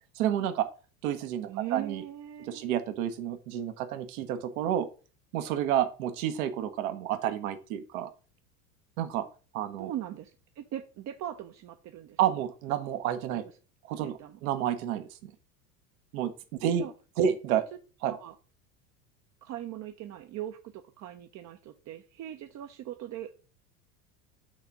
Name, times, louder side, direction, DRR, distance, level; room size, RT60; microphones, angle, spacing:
voice 1, 0.2-0.7 1.0-2.0 2.5-4.9 5.3-8.1 9.0-9.3 9.5-9.9 12.2-13.5 13.9-15.3 16.1-16.3 16.6-16.9 17.2-17.6 18.0-18.1, right 10 dB, 65° right, 9 dB, 1.0 m, -30 dB
voice 2, 1.5-2.7 9.8-12.2 13.3-13.5 14.0-14.4 16.6-16.9 17.2-17.3 18.0-18.3 19.4-23.3, right 12 dB, 40° right, 6 dB, 0.7 m, -40 dB
6.5 x 3.4 x 5.9 m, 0.35 s
hypercardioid pair, 85°, 45 cm